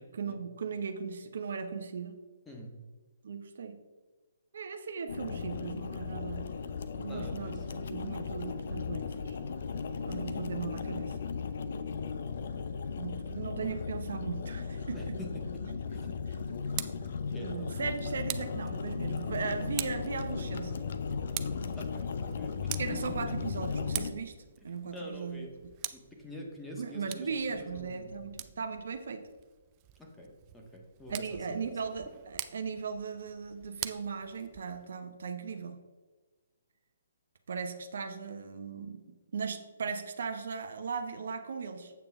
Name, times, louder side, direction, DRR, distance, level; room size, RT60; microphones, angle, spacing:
voice 1, 0.1-2.2 3.2-3.8 4.5-6.5 7.0-9.4 10.1-11.2 13.0-15.2 16.3-16.4 17.4-20.8 22.8-24.3 24.6-25.7 26.8-29.3 31.1-35.8 37.5-41.9, right 5 dB, 65° right, 7 dB, 0.8 m, -38 dB
sound 1, 5.1-24.1, left 5 dB, 60° left, 0.7 m, -36 dB
voice 2, 7.1-7.6 14.9-15.5 15.9-16.2 17.3-17.7 21.8-23.0 24.9-25.5 25.9-27.3 27.6-28.1 30.0-31.6, left 1 dB, 5° left, -1 dB, 1.5 m, -45 dB
Tick, 16.4-34.9, right 15 dB, 30° right, 0.4 m, -45 dB
8.2 x 6.9 x 3.6 m, 1.3 s
figure-of-eight pair, 135°, 0 cm